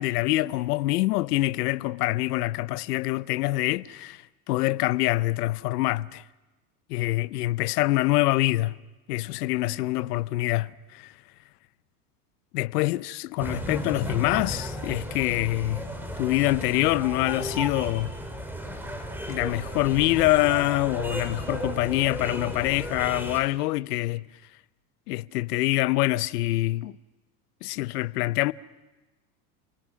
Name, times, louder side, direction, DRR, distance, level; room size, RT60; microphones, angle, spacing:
voice 1, 0.0-4.2 4.5-6.2 6.9-8.8 9.1-11.1 12.5-15.9 16.2-18.1 19.3-24.2 25.1-27.0 27.6-28.5, left 18 dB, 75° left, 0.7 m, -25 dB
sound 1, 13.4-23.4, equal, 5° right, 3.8 m, -34 dB
28.5 x 19.5 x 6.2 m
supercardioid pair, 110°, 47 cm